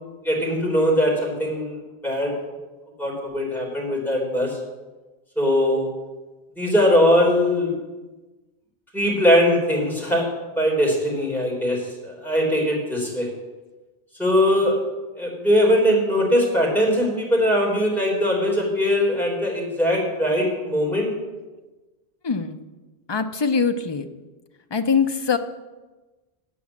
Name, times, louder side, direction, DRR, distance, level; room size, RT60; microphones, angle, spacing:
voice 1, 0.2-2.3 3.0-4.6 5.4-5.9 6.6-7.7 8.9-10.3 10.6-13.3 14.2-14.8 15.2-21.1, equal, ahead, -4 dB, 3.6 m, -21 dB
voice 2, 22.2-22.6 23.1-24.1 24.7-25.4, left 5 dB, 30° left, 7 dB, 0.5 m, -22 dB
8.5 x 8.4 x 7.1 m, 1.2 s
omnidirectional pair, 1.1 m